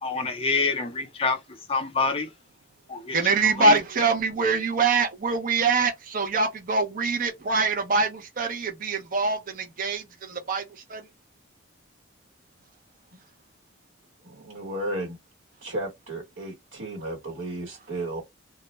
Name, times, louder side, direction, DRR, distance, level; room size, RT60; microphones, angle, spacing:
voice 1, 0.0-2.3 2.9-3.2 3.4-3.8, left 4 dB, 30° left, 0.5 m, -27 dB
voice 2, 3.1-11.1, right 4 dB, 45° right, 0.6 m, -24 dB
voice 3, 14.2-15.2 15.6-18.2, right 1 dB, 85° right, 1.2 m, -33 dB
2.3 x 2.1 x 2.9 m
head